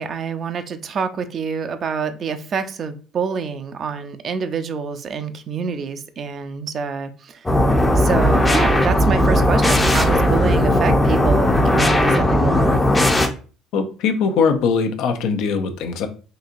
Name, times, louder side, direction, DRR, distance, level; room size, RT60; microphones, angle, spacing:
voice 1, 0.0-7.4 8.0-12.8, right 5 dB, 45° right, 9 dB, 0.4 m, -26 dB
sound 1, 7.5-13.3, left 1 dB, 10° left, 0.6 m, -17 dB
voice 2, 13.7-16.1, left 5 dB, 70° left, 6 dB, 0.6 m, -21 dB
3.9 x 2.8 x 2.5 m, 0.37 s
supercardioid pair, 100°, 0 cm